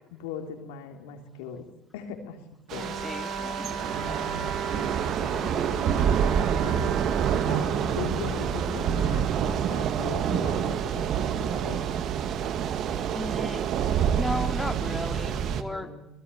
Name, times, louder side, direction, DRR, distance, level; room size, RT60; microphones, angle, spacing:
voice 1, 0.1-1.7 1.9-2.4 2.7-3.0 4.0-6.9 7.5-11.9 15.7-16.1, left 7 dB, 80° left, 4 dB, 3.4 m, -40 dB
Thunder / Rain, 2.7-15.6, right 8 dB, 55° right, 1.9 m, -27 dB
Bowed string instrument, 2.7-10.1, right 5 dB, 75° right, 5.0 m, -37 dB
voice 2, 2.8-3.7 13.1-13.6 14.1-15.9, equal, 5° left, 5 dB, 3.2 m, -34 dB
26.5 x 19.5 x 8.5 m, 0.85 s
hypercardioid pair, 70°, 0 cm